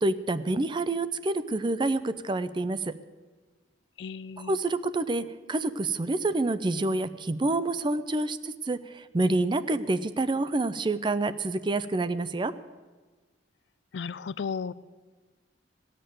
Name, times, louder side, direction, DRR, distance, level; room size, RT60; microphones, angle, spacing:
voice 1, 0.0-2.9 4.4-12.5, right 2 dB, 25° right, 14 dB, 0.5 m, -28 dB
voice 2, 4.0-4.6 13.9-14.7, left 6 dB, 70° left, 17 dB, 0.4 m, -34 dB
17.0 x 6.7 x 9.1 m, 1.3 s
head